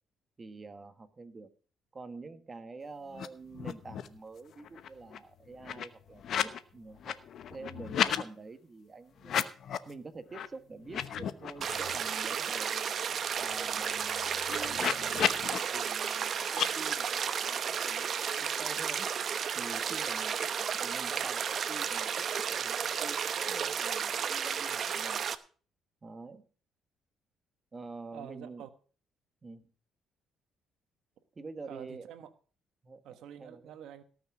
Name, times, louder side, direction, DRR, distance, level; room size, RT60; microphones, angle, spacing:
voice 1, 0.4-1.5 1.9-7.2 7.5-9.5 9.8-13.0 13.4-18.1 18.4-19.1 19.5-25.3 26.0-26.4 27.7-28.7 29.4-29.6 31.3-32.1 32.8-33.0 33.4-33.7, right 3 dB, 25° right, 9 dB, 1.4 m, -47 dB
sound 1, 3.1-4.2 4.5-6.6 6.9-8.2 9.2-9.9 10.3-10.5 10.8-12.1 12.5-12.6 12.9-15.6 16.5-16.7, left 9 dB, 60° left, 0.9 m, -34 dB
sound 2, 11.6-25.4, right 7 dB, 50° right, 0.8 m, -33 dB
voice 2, 28.1-28.7 31.7-32.3 33.0-34.0, right 10 dB, 80° right, 9 dB, 1.4 m, -47 dB
18.0 x 6.1 x 6.1 m, 0.41 s
cardioid pair, 105°, 0 cm